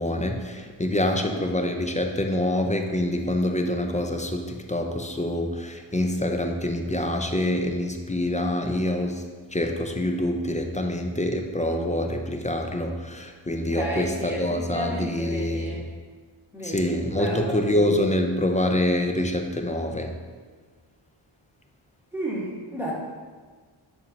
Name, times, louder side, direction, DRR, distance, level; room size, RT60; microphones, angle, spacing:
voice 1, 0.0-9.2 9.5-15.8 16.6-20.1, left 1 dB, 15° left, 4 dB, 0.5 m, -26 dB
voice 2, 1.1-1.4 13.7-15.9 16.5-17.6 22.1-22.9, right 1 dB, 5° right, -5 dB, 1.4 m, -33 dB
7.2 x 2.7 x 5.2 m, 1.5 s
wide cardioid pair, 75°, 50 cm